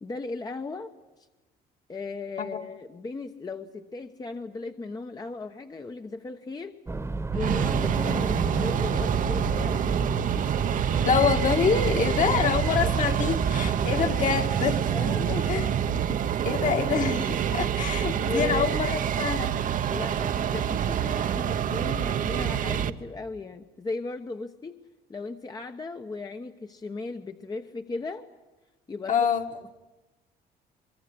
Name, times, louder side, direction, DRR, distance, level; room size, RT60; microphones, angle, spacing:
voice 1, 0.0-0.9 1.2-1.3 1.9-6.8 7.3-10.1 11.9-12.0 12.8-12.9 13.8-14.4 14.9-15.5 15.9-16.2 16.8-16.9 18.2-18.7 19.9-24.8 25.1-28.3 28.9-29.3, left 3 dB, 25° left, 1.1 m, -36 dB
sound 1, 6.9-14.0, right 3 dB, 15° right, 1.4 m, -31 dB
sound 2, 7.3-22.9, right 9 dB, 50° right, 1.0 m, -27 dB
voice 2, 11.0-14.8 15.5-15.6 16.5-19.6 29.1-29.4, left 6 dB, 50° left, 2.2 m, -26 dB
23.5 x 22.5 x 9.9 m
cardioid pair, 110°, 17 cm